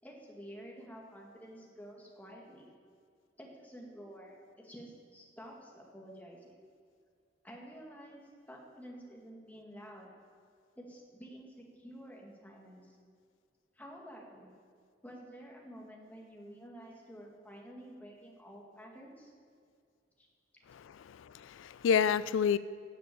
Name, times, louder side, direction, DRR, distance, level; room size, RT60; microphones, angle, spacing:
voice 1, 0.0-2.7 3.4-6.6 7.4-8.2 8.5-10.1 10.8-13.0 13.7-14.5 15.0-19.3 20.2-20.3, equal, 10° left, -2 dB, 2.0 m, -50 dB
voice 2, 20.7-22.6, left 7 dB, 90° left, 16 dB, 0.3 m, -29 dB
12.5 x 7.6 x 8.6 m, 2.2 s
head